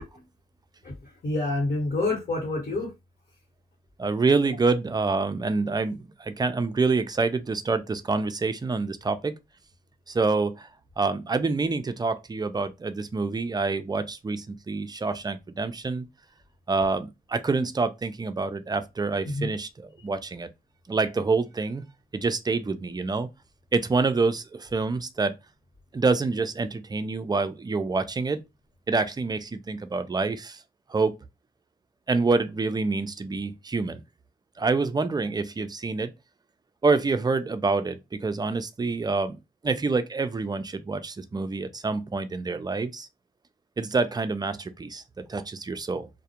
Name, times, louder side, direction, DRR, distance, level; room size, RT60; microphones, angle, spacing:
voice 1, 0.8-2.9 19.2-19.5, left 2 dB, 50° left, 1.1 m, -28 dB
voice 2, 4.0-9.4 10.1-10.7 11.0-16.1 16.7-20.5 20.9-21.8 22.1-23.3 23.7-25.3 25.9-28.4 28.9-30.6 30.9-31.2 32.1-34.0 34.6-36.1 36.8-43.1 43.8-46.1, right 3 dB, 25° right, 0.4 m, -27 dB
2.3 x 2.1 x 2.8 m
cardioid pair, 75°, 17 cm